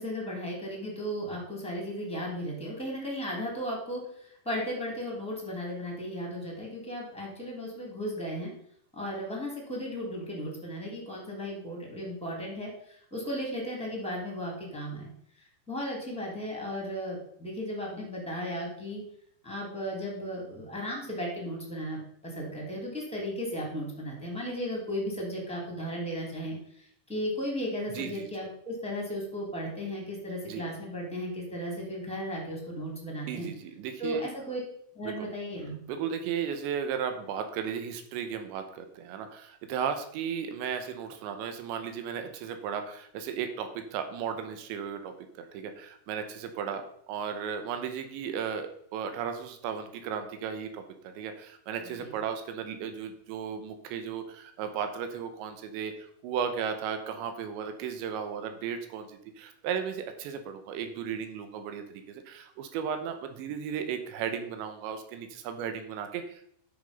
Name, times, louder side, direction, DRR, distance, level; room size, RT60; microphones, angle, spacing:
voice 1, 0.0-8.5 8.9-15.1 15.7-19.0 19.4-33.5 34.0-34.6 34.9-35.8 51.9-52.1, equal, ahead, -2 dB, 2.2 m, -35 dB
voice 2, 27.9-28.3 30.4-30.6 33.3-34.3 35.0-35.3 35.9-66.5, right 7 dB, 80° right, 7 dB, 3.3 m, -35 dB
10.5 x 6.6 x 5.4 m, 0.67 s
omnidirectional pair, 5.3 m